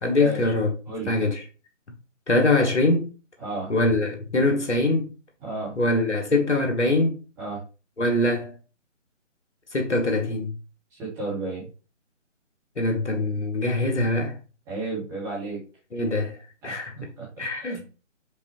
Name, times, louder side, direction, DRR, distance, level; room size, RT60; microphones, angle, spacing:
voice 1, 0.0-0.7 1.1-1.4 2.3-3.1 3.7-5.1 5.8-7.1 8.0-8.5 9.7-10.5 12.8-14.4 15.9-16.3 16.6-16.9 17.4-17.8, left 2 dB, 65° left, 1.2 m, -23 dB
voice 2, 3.4-3.7 5.4-5.7 7.4-7.6 10.9-11.7 14.7-15.6 16.6-16.8 17.2-17.3 17.6-17.8, right 2 dB, 5° right, 1.3 m, -32 dB
5.3 x 2.7 x 3.0 m
figure-of-eight pair, 145°, 38 cm